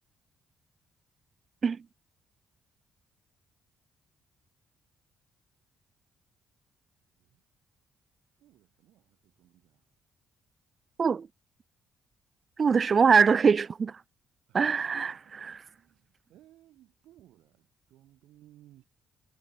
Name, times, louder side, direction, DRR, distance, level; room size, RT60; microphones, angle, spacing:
voice 1, 8.4-9.9 14.5-18.8, right 14 dB, 85° right, 6.8 m, -60 dB
voice 2, 12.6-14.0 14.5-15.6, right 5 dB, 40° right, 0.8 m, -23 dB
cardioid pair, 90°, 0 cm